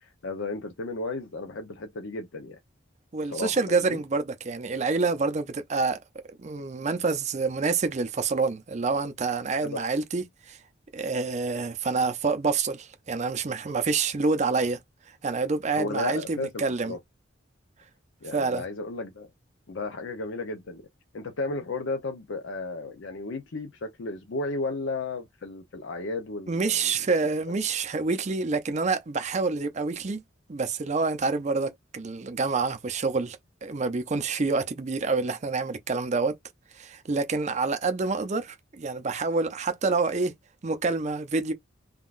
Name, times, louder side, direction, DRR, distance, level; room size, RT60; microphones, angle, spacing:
voice 1, 0.0-2.6 3.2-4.0 9.6-9.8 15.7-17.0 18.2-19.3 19.7-20.8 21.1-26.9 27.2-27.3, left 3 dB, 75° left, 0.6 m, -34 dB
voice 2, 3.1-6.0 6.4-10.6 10.9-14.8 15.2-17.0 18.3-18.6 26.5-30.2 30.5-36.4 36.8-40.3 40.6-41.5, right 4 dB, 35° right, 0.5 m, -27 dB
3.6 x 2.3 x 2.4 m
head